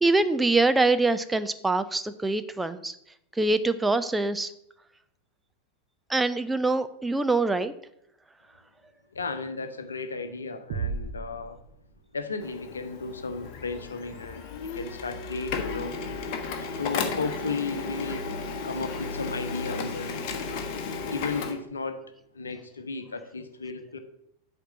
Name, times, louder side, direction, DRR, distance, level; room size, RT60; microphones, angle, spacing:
voice 1, 0.0-2.9 3.4-4.5 6.1-7.7, right 3 dB, 10° right, 11 dB, 0.5 m, -24 dB
voice 2, 9.1-11.6 12.1-15.9 16.5-18.3 18.6-20.3 21.1-22.0 22.3-24.0, left 4 dB, 75° left, 9 dB, 0.9 m, -34 dB
sound 1, 10.7-12.4, right 5 dB, 50° right, 0.8 m, -35 dB
Printer, 12.4-21.5, left 4 dB, 45° left, 1.3 m, -34 dB
8.1 x 4.4 x 7.1 m, 0.76 s
figure-of-eight pair, 90°, 0 cm